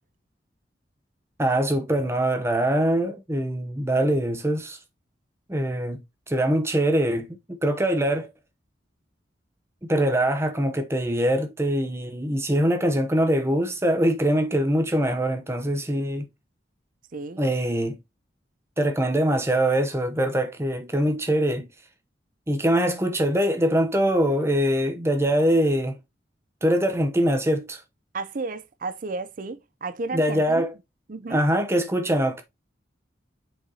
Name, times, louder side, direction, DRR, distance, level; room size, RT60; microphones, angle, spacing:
voice 1, 1.4-4.8 5.5-6.0 6.3-8.3 9.9-16.3 17.4-18.0 18.8-21.7 22.5-26.0 26.6-27.8 30.1-30.7 31.3-32.4, right 1 dB, 15° right, 0.9 m, -23 dB
voice 2, 17.1-17.5 17.8-18.0 28.1-30.7 31.1-31.4, right 3 dB, 50° right, 0.6 m, -33 dB
7.8 x 4.7 x 2.8 m
head